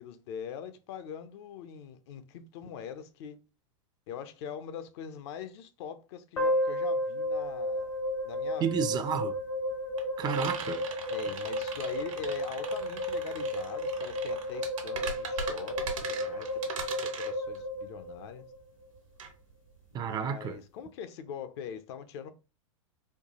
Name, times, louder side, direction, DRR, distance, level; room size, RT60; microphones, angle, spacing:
voice 1, 0.0-3.4 4.1-7.9 8.2-9.3 11.1-16.5 16.8-18.4 19.9-22.3, left 8 dB, 55° left, 0.5 m, -43 dB
sound 1, 6.4-18.6, left 1 dB, 80° left, 1.4 m, -33 dB
sound 2, 7.3-7.4 7.6-20.3, right 5 dB, 75° right, 1.0 m, -41 dB
voice 2, 8.6-9.3 10.2-10.8 19.9-20.6, right 8 dB, 25° right, 0.4 m, -31 dB
4.4 x 2.2 x 2.9 m
hypercardioid pair, 100°, 17 cm